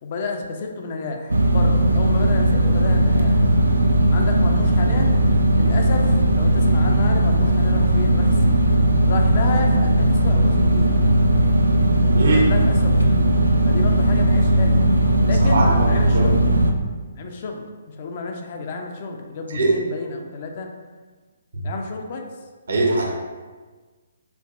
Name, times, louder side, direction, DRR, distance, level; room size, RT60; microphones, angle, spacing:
voice 1, 0.0-3.5 4.1-5.2 5.6-8.5 9.1-11.0 12.3-13.2 13.6-14.8 15.2-16.5 17.2-20.7 21.6-22.2, left 4 dB, 45° left, 3 dB, 0.4 m, -31 dB
sound 1, 1.3-16.7, right 1 dB, 85° right, 0.3 m, -17 dB
voice 2, 15.4-16.3 19.5-19.7 21.5-21.6 22.7-23.0, right 2 dB, 65° right, -1 dB, 0.8 m, -21 dB
4.5 x 2.6 x 2.5 m, 1.4 s
figure-of-eight pair, 135°, 0 cm